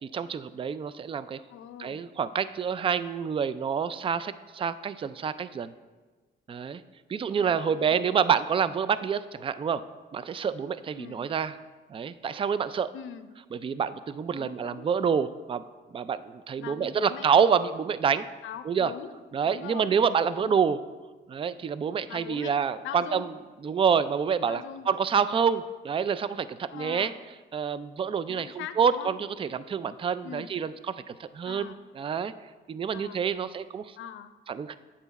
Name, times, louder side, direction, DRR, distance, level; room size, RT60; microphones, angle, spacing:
voice 1, 0.0-1.4 1.8-5.7 6.5-6.8 7.1-9.8 10.1-11.5 11.9-12.9 13.5-15.6 15.9-18.3 18.7-18.9 19.3-20.8 21.3-23.3 23.6-27.1 27.5-32.3 32.7-34.0 34.5-34.7, right 7 dB, 25° right, 15 dB, 0.4 m, -27 dB
voice 2, 1.5-2.0 7.3-8.2 11.0-11.3 12.9-13.3 14.3-14.9 16.6-17.3 18.4-19.1 19.4-19.9 20.4-20.6 22.1-22.6 22.8-23.3 24.5-24.9 26.7-27.2 28.3-29.1 30.2-30.5 31.5-31.8 32.9-33.3 34.0-34.3, left 9 dB, 80° left, 11 dB, 0.6 m, -42 dB
8.8 x 7.0 x 4.1 m, 1.3 s
cardioid pair, 90°, 20 cm